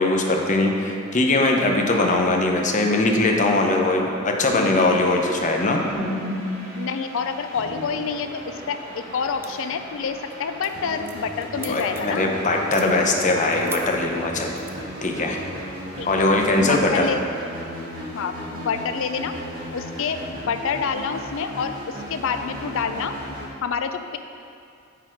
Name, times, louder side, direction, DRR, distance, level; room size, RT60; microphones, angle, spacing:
voice 1, 0.0-5.8 11.7-14.5 15.0-15.4 16.1-17.1, left 2 dB, 35° left, 2 dB, 0.7 m, -21 dB
sound 1, 4.5-23.4, equal, 45° right, 1.7 m, -35 dB
voice 2, 6.8-12.3 16.0-16.3 16.6-17.2 18.1-19.3 19.7-20.2 20.5-23.1 23.6-24.2, left 6 dB, 65° left, 8 dB, 0.4 m, -28 dB
sound 2, 9.4-9.8 10.1-10.3 10.6-12.2 12.6-12.9 13.6-13.8 14.6-14.7, right 4 dB, 10° right, 0.4 m, -38 dB
9.2 x 4.0 x 4.5 m, 2.4 s
head